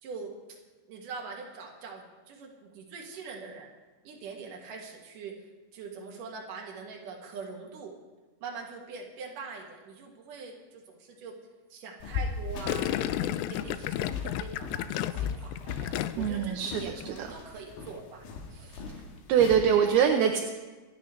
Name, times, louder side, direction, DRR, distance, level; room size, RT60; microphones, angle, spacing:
voice 1, 0.0-0.6 0.9-3.7 4.0-5.3 5.7-7.9 8.4-11.3 11.7-18.3 18.5-18.8, right 5 dB, 55° right, -1 dB, 3.0 m, -43 dB
sound 1, 12.0-19.6, left 5 dB, 65° left, 2.8 m, -38 dB
Gurgling, 12.7-16.4 16.7-17.1, left 13 dB, 85° left, 2.3 m, -32 dB
voice 2, 16.2-17.3 18.9-19.0 19.3-20.4, right 8 dB, 75° right, 3 dB, 2.4 m, -24 dB
27.5 x 10.0 x 3.2 m, 1.3 s
omnidirectional pair, 5.2 m